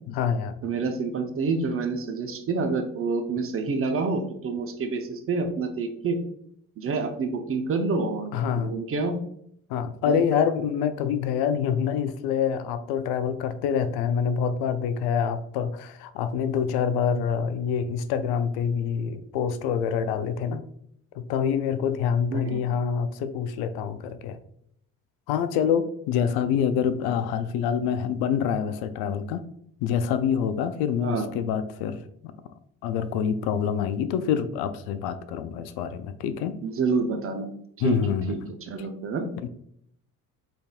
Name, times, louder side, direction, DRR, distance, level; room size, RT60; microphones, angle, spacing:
voice 1, 0.1-0.5 8.3-8.7 9.7-20.6 21.1-24.4 25.3-29.4 29.8-32.0 32.8-36.5 37.8-38.4 39.4-39.5, left 7 dB, 70° left, 11 dB, 0.5 m, -26 dB
voice 2, 0.6-6.2 6.8-9.2 10.1-10.2 22.3-22.6 31.0-31.3 36.6-37.5 37.8-38.0 38.3-39.3, right 4 dB, 35° right, 6 dB, 0.7 m, -28 dB
3.9 x 3.4 x 2.3 m, 0.69 s
hypercardioid pair, 55°, 40 cm